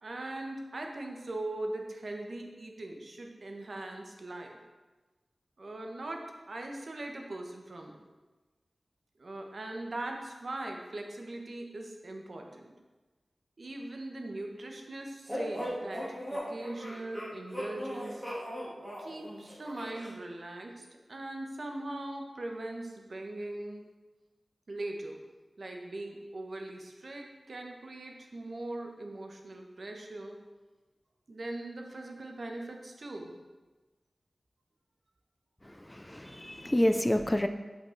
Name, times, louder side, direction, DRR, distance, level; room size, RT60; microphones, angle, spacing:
voice 1, 0.0-4.6 5.6-8.0 9.2-12.7 13.6-18.3 19.0-23.8 24.7-25.2 25.6-30.4 31.3-33.3, right 2 dB, 60° right, 2 dB, 1.1 m, -40 dB
sound 1, 15.3-20.1, equal, 5° right, 2.7 m, -38 dB
voice 2, 35.9-37.5, left 1 dB, 15° left, 8 dB, 0.4 m, -28 dB
8.0 x 5.4 x 4.5 m, 1.2 s
wide cardioid pair, 90°, 0 cm